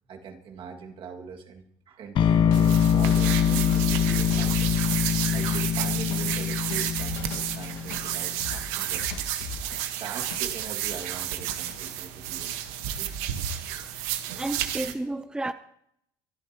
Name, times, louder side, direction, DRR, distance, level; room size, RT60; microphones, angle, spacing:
voice 1, 0.1-4.7 5.3-9.3 10.0-12.5 13.0-13.1 13.7-13.8, right 6 dB, 55° right, 2.1 m, -41 dB
sound 1, 2.2-10.6 10.9-11.7, left 5 dB, 85° left, 2.1 m, -40 dB
sound 2, 2.2-8.2, left 8 dB, 50° left, 0.9 m, -24 dB
sound 3, 2.5-14.9, right 11 dB, 85° right, 1.3 m, -32 dB
voice 2, 13.8-15.5, right 2 dB, 10° right, 0.6 m, -33 dB
24.0 x 11.0 x 3.0 m
supercardioid pair, 90°, 11 cm